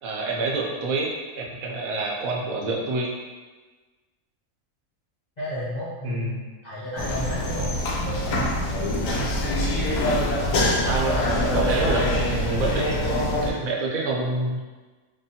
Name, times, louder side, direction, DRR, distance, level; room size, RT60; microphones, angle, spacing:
voice 1, 0.0-3.1 6.0-6.4 10.9-11.3 11.5-14.6, right 2 dB, 75° right, -2 dB, 1.0 m, -27 dB
voice 2, 5.4-7.7, equal, 50° left, -11 dB, 0.5 m, -32 dB
sound 1, 7.0-13.5, left 1 dB, 90° left, 1.1 m, -24 dB
3.3 x 2.2 x 2.7 m, 1.3 s
omnidirectional pair, 1.5 m